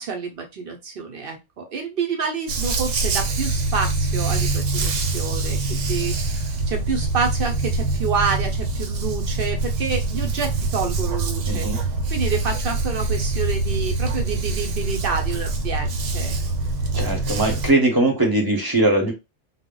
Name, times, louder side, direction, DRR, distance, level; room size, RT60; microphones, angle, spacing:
voice 1, 0.0-11.7 12.1-16.4, right 5 dB, 60° right, 4 dB, 0.6 m, -28 dB
Dog, 2.5-17.7, right 3 dB, 80° right, 1.0 m, -24 dB
voice 2, 11.5-11.8 16.9-19.1, right 2 dB, 20° right, 1 dB, 0.7 m, -20 dB
2.1 x 2.1 x 3.7 m, 0.23 s
omnidirectional pair, 1.3 m